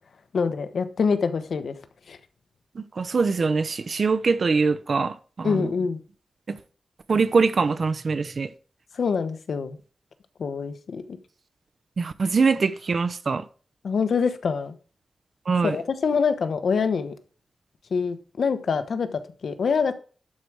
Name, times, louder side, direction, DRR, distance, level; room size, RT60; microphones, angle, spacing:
voice 1, 0.3-1.7 2.1-2.2 5.4-6.0 9.0-9.8 10.4-11.2 13.8-14.7 15.6-17.1 17.9-20.0, left 5 dB, 80° left, 1.2 m, -25 dB
voice 2, 2.7-5.7 6.5-6.6 7.1-8.5 12.0-13.4 15.5-15.8, right 4 dB, 60° right, 0.9 m, -23 dB
12.0 x 4.9 x 6.2 m
wide cardioid pair, 90°, 0 cm